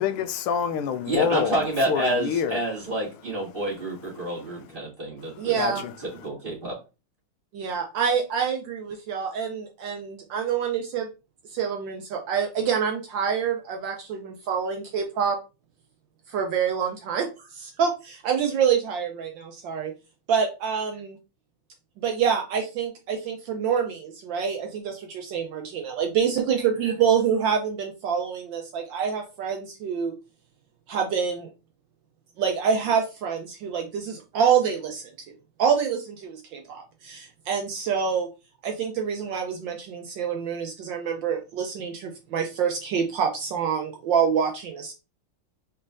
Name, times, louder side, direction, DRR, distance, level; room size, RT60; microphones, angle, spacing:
voice 1, 0.0-2.6 3.7-3.8 4.1-4.6 5.2-6.3, left 7 dB, 85° left, 1.5 m, -28 dB
voice 2, 1.1-5.8 6.2-6.8, right 1 dB, 25° right, 2.1 m, -28 dB
voice 3, 5.4-5.8 7.5-11.1 11.5-15.4 16.3-19.9 20.3-20.9 22.0-30.1 30.9-31.5 32.4-35.1 35.6-38.3 38.6-44.9, right 7 dB, 70° right, 1.2 m, -26 dB
4.4 x 4.1 x 2.5 m
omnidirectional pair, 2.3 m